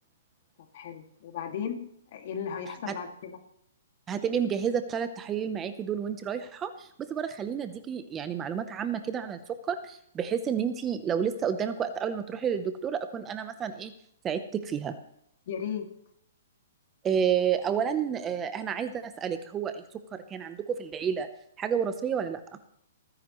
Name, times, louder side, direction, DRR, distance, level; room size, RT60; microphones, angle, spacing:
voice 1, 0.6-3.4 15.5-15.9, left 7 dB, 55° left, 4 dB, 2.3 m, -36 dB
voice 2, 4.1-9.4 9.7-13.9 14.2-15.0 17.0-19.8 20.1-21.3 21.6-22.4, right 7 dB, 15° right, 10 dB, 0.8 m, -30 dB
29.0 x 10.0 x 3.2 m, 0.74 s
hypercardioid pair, 155°, 0 cm